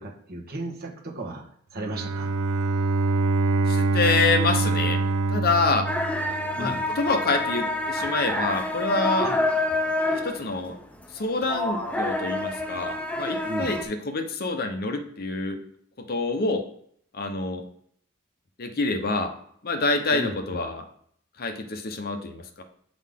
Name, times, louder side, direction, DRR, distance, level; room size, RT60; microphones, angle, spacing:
voice 1, 0.0-1.4 1.7-2.3 6.6-6.8 9.2-9.4 13.4-13.8 20.1-20.3, right 1 dB, 45° right, -1 dB, 1.5 m, -34 dB
Bowed string instrument, 1.8-6.8, right 3 dB, 85° right, 0.5 m, -25 dB
voice 2, 3.7-5.0 5.3-5.9 6.6-9.3 10.1-10.8 11.1-15.6 16.0-16.7 17.1-17.6 18.6-19.3 19.6-20.8 21.4-22.6, left 3 dB, 45° left, 5 dB, 0.8 m, -26 dB
sound 1, 5.9-13.8, left 2 dB, 5° left, 0.6 m, -27 dB
8.4 x 3.9 x 3.6 m, 0.64 s
head